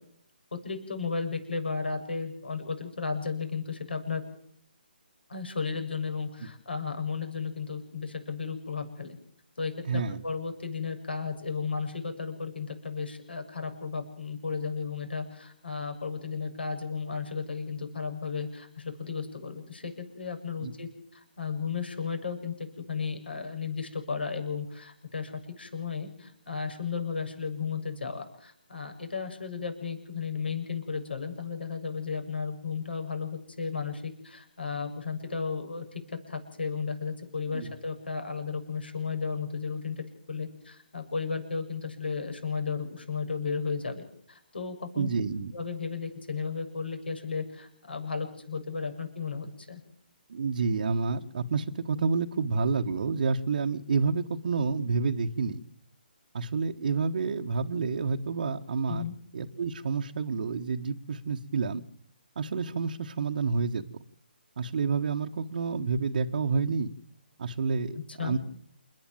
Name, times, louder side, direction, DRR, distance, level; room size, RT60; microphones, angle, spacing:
voice 1, 0.6-4.2 5.3-9.2 9.6-45.1 45.5-49.8 58.9-59.1 68.2-68.4, left 5 dB, 75° left, 6 dB, 7.2 m, -34 dB
voice 2, 9.9-10.2 20.6-20.7 37.5-37.7 45.0-45.5 50.3-55.6 56.3-59.0 59.3-61.8 62.3-63.8 64.6-66.9 67.4-68.4, right 4 dB, 55° right, 2 dB, 1.3 m, -29 dB
29.0 x 10.0 x 9.1 m, 0.65 s
figure-of-eight pair, 150°, 6 cm